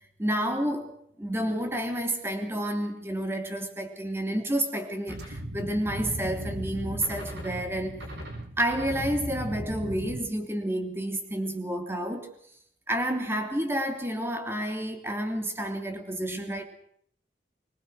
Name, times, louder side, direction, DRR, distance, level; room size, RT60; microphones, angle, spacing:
voice 1, 0.2-8.0 8.6-12.3 12.9-16.7, right 1 dB, 15° right, 3.1 m, -30 dB
sound 1, 5.1-10.2, equal, 80° right, 7.5 m, -37 dB
25.0 x 21.5 x 6.3 m
head